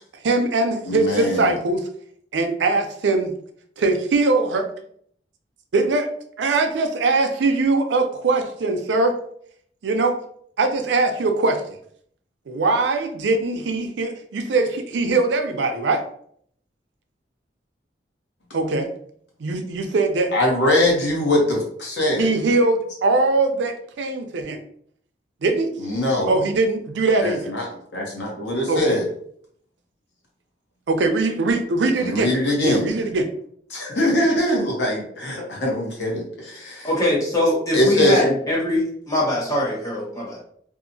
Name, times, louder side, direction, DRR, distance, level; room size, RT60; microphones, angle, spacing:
voice 1, 0.2-1.8 2.3-3.3 3.8-4.7 5.7-6.1 6.4-9.1 9.8-10.2 10.6-11.6 12.5-16.0 18.5-18.9 19.4-20.3 22.2-24.6 25.4-25.7 26.2-27.5 28.7-29.0 30.9-32.3 32.6-33.3, right 3 dB, 80° right, 5 dB, 0.5 m, -21 dB
voice 2, 0.9-1.5 20.3-22.3 25.8-26.3 27.2-27.7 27.9-29.1 32.0-32.8 33.7-36.9 37.7-38.3, left 1 dB, 80° left, -2 dB, 1.1 m, -22 dB
voice 3, 36.8-40.4, left 1 dB, 20° left, -4 dB, 0.9 m, -22 dB
2.8 x 2.4 x 2.6 m, 0.63 s
head